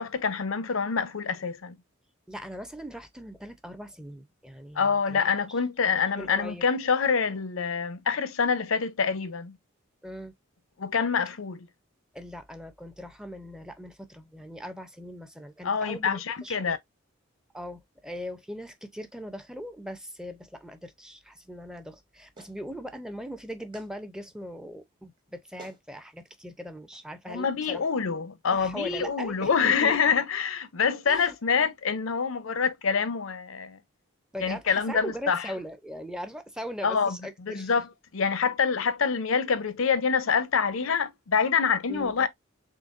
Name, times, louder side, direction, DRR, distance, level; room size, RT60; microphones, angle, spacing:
voice 1, 0.0-1.7 4.8-9.6 10.8-11.7 15.6-16.8 27.3-33.8 34.4-35.5 36.8-37.9 38.1-42.3, left 6 dB, 90° left, 0.6 m, -26 dB
voice 2, 2.3-5.3 6.2-6.7 10.0-10.3 12.1-16.8 17.5-27.8 28.5-30.0 31.1-31.3 34.3-37.7 41.9-42.2, equal, 5° right, 0.5 m, -40 dB
Clapping, 22.4-22.6 23.7-23.9 25.2-25.3 25.6-25.8 26.9-27.1, right 3 dB, 25° right, 1.0 m, -49 dB
3.8 x 3.3 x 2.5 m
head